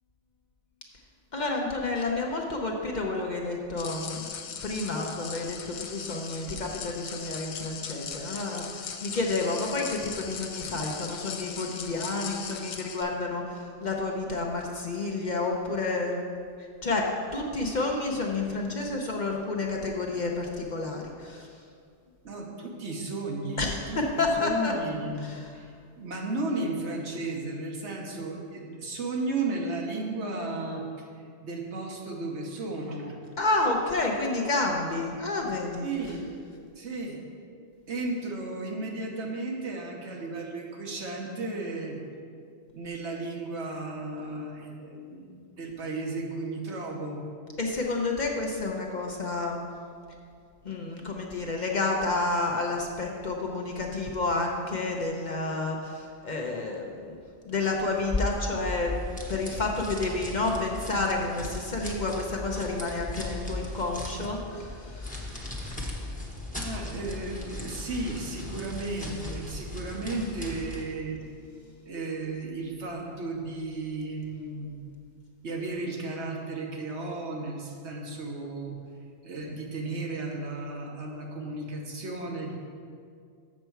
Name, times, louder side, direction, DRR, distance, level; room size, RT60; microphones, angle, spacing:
voice 1, 1.3-4.4 4.6-16.2 16.6-21.5 23.6-24.7 25.2-25.5 33.4-35.9 47.6-49.6 50.6-57.2 57.5-59.0 59.3-65.3, left 3 dB, 45° left, 0 dB, 0.7 m, -30 dB
sound 1, 3.8-13.0, left 6 dB, 70° left, 0.9 m, -39 dB
voice 2, 22.2-24.0 24.4-31.1 31.4-33.2 35.8-36.3 36.7-37.2 37.9-42.0 42.7-47.3 65.9-66.0 66.6-71.2 71.8-74.8 75.4-78.7 79.2-82.5, right 2 dB, 70° right, 0 dB, 1.3 m, -34 dB
sound 2, 58.0-70.9, left 2 dB, 10° left, 0.9 m, -37 dB
7.2 x 6.7 x 4.6 m, 2.2 s
omnidirectional pair, 1.2 m